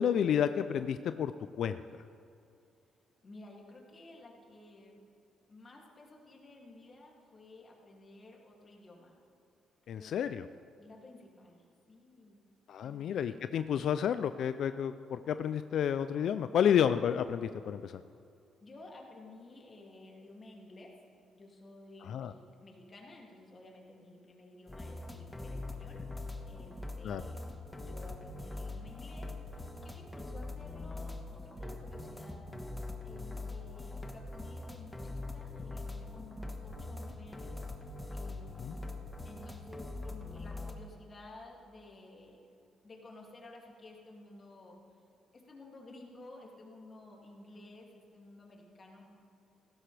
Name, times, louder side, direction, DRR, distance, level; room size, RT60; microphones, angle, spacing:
voice 1, 0.0-1.3 1.6-1.8 9.9-10.5 12.7-18.0 22.0-22.3 27.0-27.2 38.6-38.7, left 8 dB, 70° left, 11 dB, 0.4 m, -30 dB
voice 2, 3.2-5.0 5.5-9.1 10.0-10.1 10.8-11.6 11.9-12.4 12.8-13.0 18.6-20.9 21.3-27.4 27.7-32.4 33.0-37.6 38.1-38.9 39.2-42.4 42.8-44.8 45.3-49.1, left 2 dB, 35° left, -1 dB, 2.5 m, -53 dB
sound 1, 24.7-40.7, left 2 dB, 10° left, 1.3 m, -42 dB
16.5 x 14.0 x 3.4 m, 2.6 s
cardioid pair, 90°, 0 cm